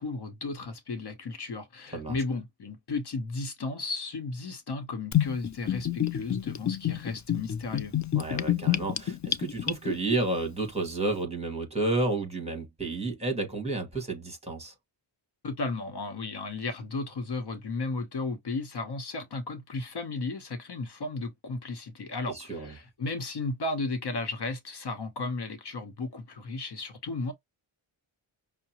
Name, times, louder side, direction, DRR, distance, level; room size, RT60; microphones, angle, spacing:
voice 1, 0.0-7.9 15.4-27.3, left 3 dB, 55° left, 0.9 m, -34 dB
Gurgling / Bathtub (filling or washing), 5.1-10.2, left 11 dB, 40° left, 0.4 m, -28 dB
voice 2, 8.1-14.7 22.3-22.7, right 2 dB, 15° right, 1.5 m, -31 dB
5.7 x 2.0 x 2.9 m
wide cardioid pair, 125°, 48 cm